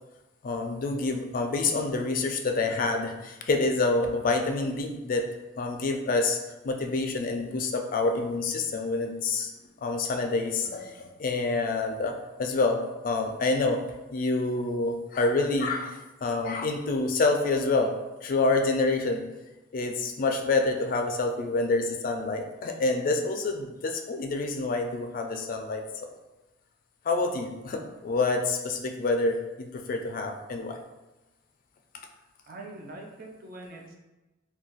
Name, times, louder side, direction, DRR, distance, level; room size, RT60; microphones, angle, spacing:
voice 1, 0.4-5.3 5.6-9.5 9.8-13.8 14.1-17.9 18.2-19.2 19.7-25.8 27.0-30.8, left 3 dB, 45° left, 4 dB, 0.3 m, -27 dB
voice 2, 32.5-34.0, right 2 dB, 45° right, 1 dB, 0.5 m, -43 dB
2.4 x 2.2 x 3.9 m, 1.1 s
head